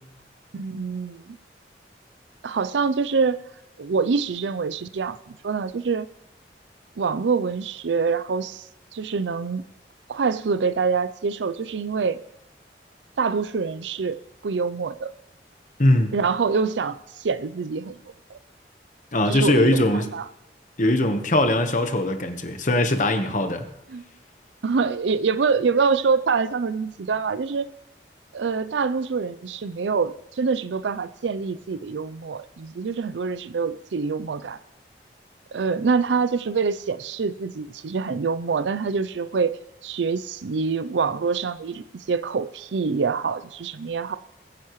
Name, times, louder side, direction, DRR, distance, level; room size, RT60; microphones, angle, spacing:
voice 1, 0.5-1.4 2.4-3.4 3.8-6.1 7.0-8.6 8.9-9.6 10.1-12.2 13.2-14.2 14.4-15.1 16.1-18.0 18.3-18.4 19.3-20.3 23.9-24.0 24.6-27.7 28.3-34.6 35.5-44.2, right 5 dB, 85° right, 14 dB, 0.5 m, -25 dB
voice 2, 15.8-16.1 19.1-20.1 20.8-23.7, left 1 dB, 45° left, 7 dB, 1.1 m, -21 dB
20.5 x 9.4 x 3.1 m, 0.87 s
head